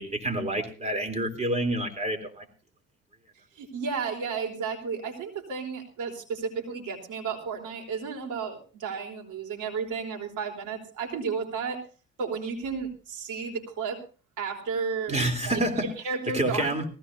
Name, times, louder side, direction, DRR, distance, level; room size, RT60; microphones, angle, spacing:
voice 1, 0.0-2.5 15.1-15.9 16.3-16.8, right 1 dB, 20° right, 7 dB, 3.6 m, -28 dB
voice 2, 3.6-11.8 12.2-14.0 14.4-15.2 16.0-16.7, right 5 dB, 85° right, 3 dB, 3.5 m, -33 dB
19.5 x 16.0 x 2.8 m, 0.37 s
cardioid pair, 90°, 30 cm